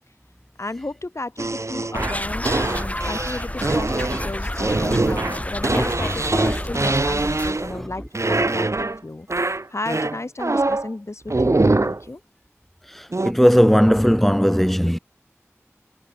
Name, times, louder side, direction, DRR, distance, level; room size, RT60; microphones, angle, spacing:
voice 1, 0.6-8.7 9.0-12.2, left 2 dB, 65° left, 5.8 m, -33 dB
sound 1, 1.4-7.9 8.1-9.0 9.3-10.9 11.3-12.0 13.1-13.3, right 2 dB, 70° right, 2.2 m, -23 dB
sound 2, 1.9-7.5, left 1 dB, 25° left, 5.0 m, -29 dB
voice 2, 12.9-15.0, equal, 5° left, 3.6 m, -17 dB
wide cardioid pair, 45°, 5 cm